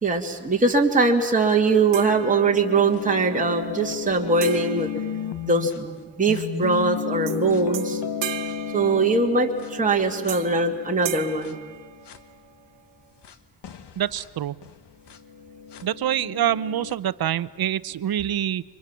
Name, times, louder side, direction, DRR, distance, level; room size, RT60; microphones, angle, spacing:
voice 1, 0.0-4.9 5.5-8.0 8.7-11.6, right 3 dB, 20° right, 0 dB, 2.7 m, -22 dB
sound 1, 1.4-5.8 6.3-12.2 13.2-13.3 13.6-17.0, left 8 dB, 70° left, 1.6 m, -34 dB
sound 2, 1.9-2.9 4.4-6.0 7.3-7.4 7.7-9.6 10.3-10.7 11.0-12.5, right 12 dB, 80° right, 1.4 m, -37 dB
voice 2, 14.0-14.6 15.8-18.6, right 11 dB, 55° right, 16 dB, 0.8 m, -25 dB
29.5 x 25.0 x 7.5 m, 1.3 s
cardioid pair, 125°, 43 cm